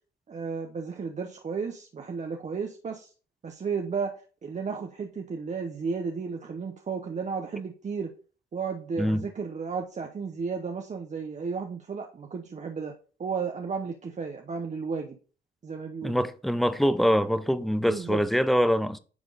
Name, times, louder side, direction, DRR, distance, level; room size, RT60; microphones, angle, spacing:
voice 1, 0.3-3.1 3.4-4.2 4.4-8.1 8.5-12.9 13.2-15.2 15.6-16.2 17.9-18.2, right 5 dB, 35° right, 0.8 m, -33 dB
voice 2, 9.0-9.3 16.0-19.0, equal, ahead, 0.5 m, -24 dB
9.6 x 3.6 x 3.9 m
cardioid pair, 90°, 20 cm